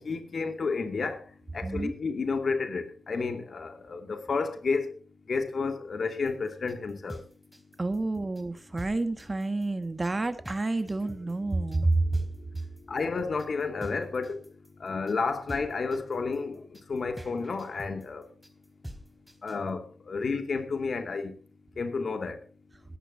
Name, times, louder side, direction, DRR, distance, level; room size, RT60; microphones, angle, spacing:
voice 1, 0.0-5.0 5.3-7.2 12.9-14.5 14.8-18.3 19.4-21.3 21.8-22.4, left 4 dB, 60° left, 2.6 m, -31 dB
voice 2, 1.6-1.9 7.8-12.0, right 2 dB, 30° right, 1.6 m, -29 dB
sound 1, 6.3-19.7, equal, 5° right, 3.6 m, -46 dB
22.5 x 11.0 x 2.9 m
supercardioid pair, 40°, 0 cm